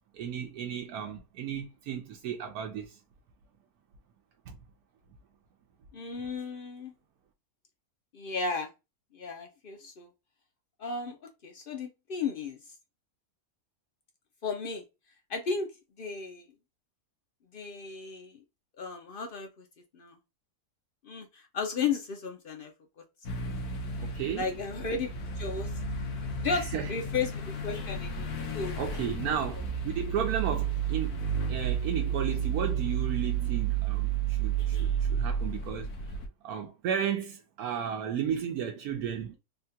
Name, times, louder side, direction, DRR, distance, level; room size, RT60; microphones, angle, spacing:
voice 1, 0.1-3.0 4.5-4.6 24.0-24.5 26.5-26.9 28.8-31.2 31.5-35.9 36.4-39.3, right 8 dB, 85° right, 1.1 m, -34 dB
voice 2, 5.9-6.9 8.1-8.7 9.1-10.1 10.8-11.2 11.4-12.6 14.4-14.8 15.3-15.7 16.0-16.4 17.5-18.4 18.8-19.7 19.9-20.2 21.0-22.7 24.4-25.1 25.4-25.7 26.4-28.7, left 5 dB, 60° left, 0.6 m, -34 dB
sound 1, 23.2-36.3, right 6 dB, 85° left, 1.3 m, -32 dB
3.5 x 2.3 x 2.6 m
omnidirectional pair, 1.6 m